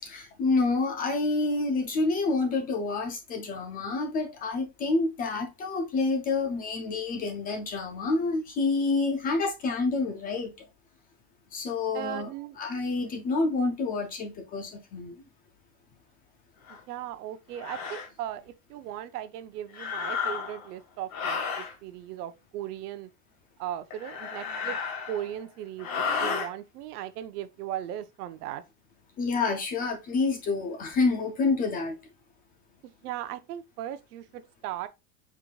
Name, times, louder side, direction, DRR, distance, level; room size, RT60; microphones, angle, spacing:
voice 1, 0.0-10.5 11.5-12.3 12.6-15.1 29.2-32.0, left 3 dB, 20° left, 0.3 m, -28 dB
voice 2, 11.9-12.6 16.7-23.1 23.6-24.8 25.1-28.6 32.8-34.9, right 11 dB, 85° right, 0.7 m, -37 dB
sound 1, 16.7-16.8 17.6-18.1 19.7-20.7 21.1-21.7 23.9-25.4 25.8-26.5, left 5 dB, 50° left, 1.6 m, -32 dB
4.6 x 3.7 x 2.3 m
supercardioid pair, 140°, 45 cm